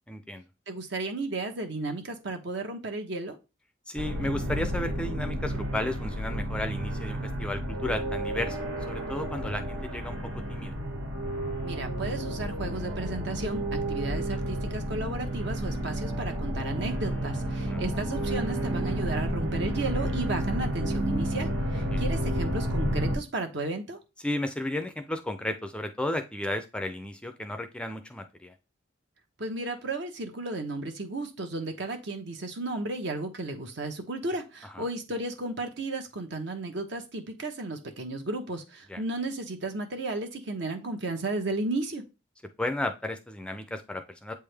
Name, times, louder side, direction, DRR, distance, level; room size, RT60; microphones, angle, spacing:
voice 1, 0.1-0.4 3.9-8.6 8.9-10.8 17.7-17.9 21.7-22.0 24.2-28.5 34.6-34.8 38.9-39.0 42.6-44.3, left 1 dB, 5° left, 7 dB, 0.4 m, -33 dB
voice 2, 0.7-3.4 11.6-24.0 29.4-42.0, right 2 dB, 60° right, 5 dB, 1.1 m, -34 dB
sound 1, 4.0-23.2, right 1 dB, 80° right, 1.9 m, -31 dB
7.9 x 3.5 x 3.4 m, 0.27 s
head